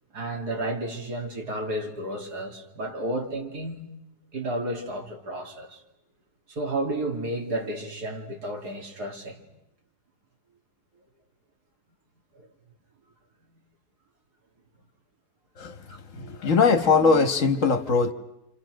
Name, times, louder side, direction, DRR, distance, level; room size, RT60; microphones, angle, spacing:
voice 1, 0.1-3.9 4.3-5.8 6.5-9.4 12.4-12.5 15.9-16.0, right 1 dB, 80° right, 3.5 m, -32 dB
voice 2, 16.1-18.1, left 4 dB, 55° left, 1.6 m, -21 dB
28.5 x 27.5 x 6.4 m
omnidirectional pair, 1.7 m